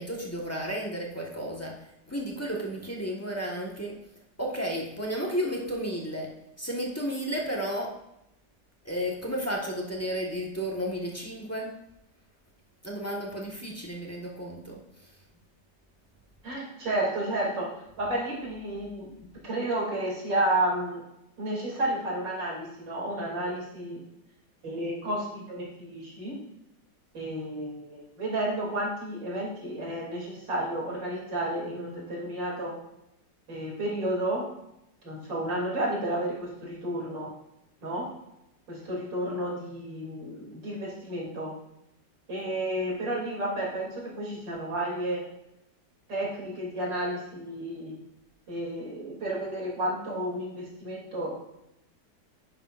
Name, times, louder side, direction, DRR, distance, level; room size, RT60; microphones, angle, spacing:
voice 1, 0.0-1.8 2.1-4.0 4.4-6.3 6.6-8.0 8.8-11.7 12.8-14.8, equal, 10° left, -2 dB, 1.3 m, -32 dB
voice 2, 16.4-21.0 21.4-24.0 24.6-26.4 27.1-32.8 33.5-34.5 35.0-37.3 37.8-38.1 38.7-41.5 42.3-45.2 46.1-48.0 48.5-51.4, right 1 dB, 80° right, -4 dB, 3.7 m, -31 dB
10.5 x 10.0 x 2.6 m, 0.83 s
omnidirectional pair, 2.0 m